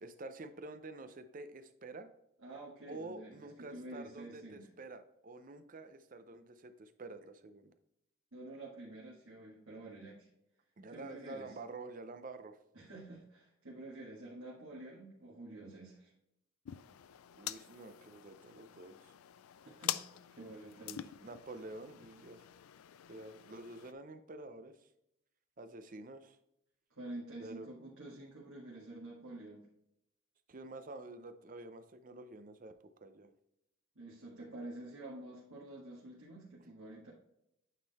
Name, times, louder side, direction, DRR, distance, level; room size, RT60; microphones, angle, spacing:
voice 1, 0.0-2.1 2.9-7.7 10.8-12.6 17.3-19.1 20.9-22.4 23.1-24.9 25.6-26.4 27.4-27.7 30.5-32.7 33.0-33.3, right 2 dB, 40° right, 10 dB, 0.6 m, -48 dB
voice 2, 2.4-4.7 8.3-10.3 10.9-11.6 12.7-16.1 19.7-21.0 26.9-29.7 34.0-37.1, right 2 dB, 70° right, -6 dB, 1.7 m, -49 dB
sound 1, 16.6-23.9, left 12 dB, 85° left, 0.4 m, -45 dB
9.2 x 3.8 x 4.1 m, 0.81 s
head